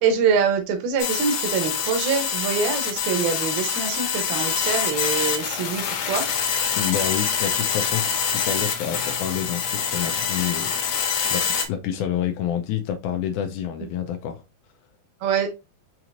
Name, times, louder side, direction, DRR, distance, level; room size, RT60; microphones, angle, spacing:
voice 1, 0.0-6.3 15.2-15.5, right 6 dB, 85° right, 2.8 m, -24 dB
sound 1, 1.0-11.7, left 7 dB, 70° left, 2.3 m, -25 dB
voice 2, 6.8-14.4, left 9 dB, 90° left, 1.8 m, -28 dB
7.0 x 3.0 x 2.5 m
omnidirectional pair, 4.1 m